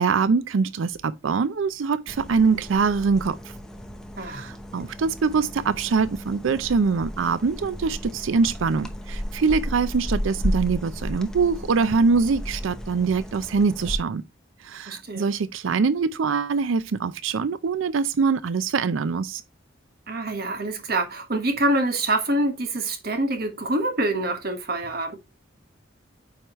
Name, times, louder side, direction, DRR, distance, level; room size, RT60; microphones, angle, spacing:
voice 1, 0.0-3.4 4.3-14.2 14.6-19.4, right 5 dB, 80° right, 0.5 m, -23 dB
sound 1, 2.1-14.0, equal, 5° left, 0.8 m, -34 dB
voice 2, 4.2-4.5 14.9-15.3 20.1-25.2, right 1 dB, 50° right, 1.4 m, -26 dB
9.1 x 4.9 x 2.9 m
head